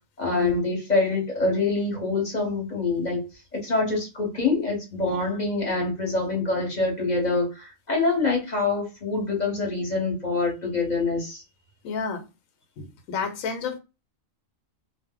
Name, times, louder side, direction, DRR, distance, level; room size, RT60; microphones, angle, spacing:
voice 1, 0.2-3.2 3.5-11.4, left 3 dB, 35° left, 0.9 m, -25 dB
voice 2, 11.8-12.2 12.8-13.8, left 5 dB, 80° left, 1.0 m, -31 dB
2.4 x 2.0 x 3.6 m
omnidirectional pair, 1.4 m